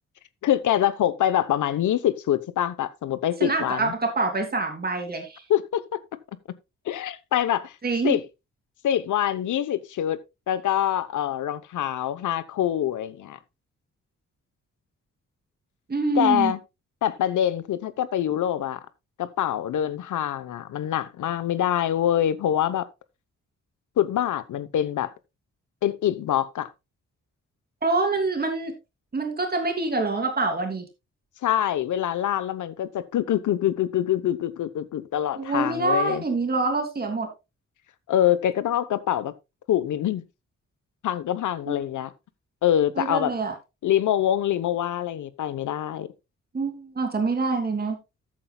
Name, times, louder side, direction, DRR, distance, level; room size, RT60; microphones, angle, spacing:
voice 1, 0.4-3.9 5.5-5.8 6.8-7.7 8.0-8.2 8.8-10.2 10.5-13.4 16.1-16.6 17.0-18.8 19.2-22.9 24.0-25.1 25.8-26.7 31.4-36.2 38.1-39.3 39.7-40.2 41.0-42.1 42.6-43.3 43.8-46.1, left 11 dB, 90° left, 0.9 m, -25 dB
voice 2, 3.4-5.4 7.8-8.2 15.9-16.5 27.8-28.7 29.1-30.9 35.4-37.3 41.7-41.8 43.0-43.5 46.5-48.0, right 3 dB, 30° right, 3.1 m, -25 dB
14.0 x 8.6 x 2.3 m
wide cardioid pair, 125°, 30 cm